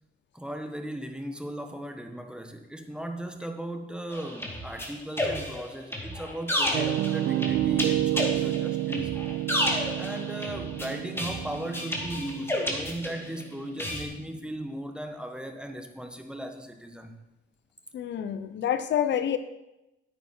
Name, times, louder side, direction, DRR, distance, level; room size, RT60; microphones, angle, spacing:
voice 1, 0.3-9.1 9.9-17.1, right 1 dB, 5° right, 6 dB, 1.2 m, -37 dB
sound 1, 4.1-13.4 13.8-14.0, left 1 dB, 10° left, 2.2 m, -31 dB
Piano, 6.7-14.6, right 14 dB, 70° right, 0.5 m, -30 dB
voice 2, 17.9-19.4, left 9 dB, 65° left, 11 dB, 0.7 m, -27 dB
9.7 x 9.1 x 4.5 m, 0.94 s
cardioid pair, 90°, 20 cm